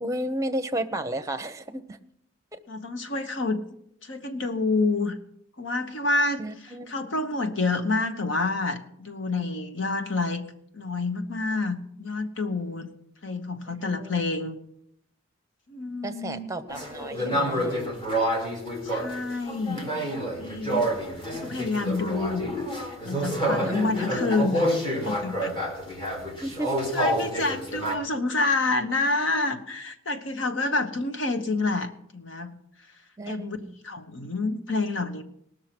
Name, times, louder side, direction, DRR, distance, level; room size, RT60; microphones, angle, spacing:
voice 1, 0.0-1.8 2.5-2.6 6.4-7.1 13.8-14.2 16.0-17.8 23.6-23.9 26.4-26.8 27.4-27.5 33.2-33.7, right 1 dB, 15° right, 7 dB, 0.8 m, -33 dB
voice 2, 2.7-3.6 4.0-5.2 5.6-10.4 10.7-12.9 13.2-14.5 15.7-16.5 18.8-19.9 20.4-20.9 21.3-22.5 23.0-24.7 25.0-25.6 26.9-32.5 33.3-33.6 33.8-35.2, left 3 dB, 65° left, 6 dB, 1.2 m, -28 dB
sound 1, 16.7-27.9, equal, 25° left, 2.3 m, -28 dB
19.0 x 6.5 x 6.0 m, 0.72 s
head